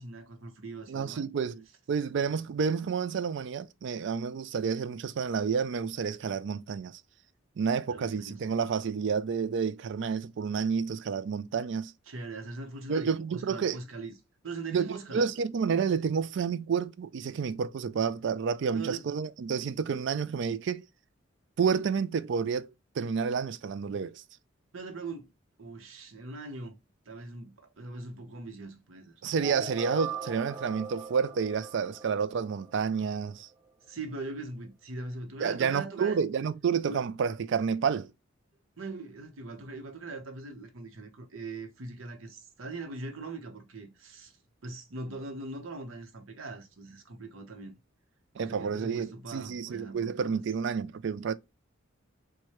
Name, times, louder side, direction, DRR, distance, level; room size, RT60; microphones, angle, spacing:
voice 1, 0.0-1.3 7.9-8.5 12.1-14.1 14.4-15.3 18.7-19.1 24.7-25.3 25.6-26.8 27.1-29.1 33.9-36.2 36.8-37.0 38.8-44.3 44.6-47.7 48.4-50.4, right 3 dB, 85° right, 0.9 m, -41 dB
voice 2, 0.9-7.0 7.6-11.9 12.9-13.8 14.7-20.9 21.6-24.2 29.2-33.5 35.4-38.1 48.4-51.3, right 6 dB, 60° right, 0.4 m, -30 dB
sound 1, 29.4-33.3, right 5 dB, 20° right, 0.7 m, -41 dB
4.6 x 2.2 x 2.9 m
head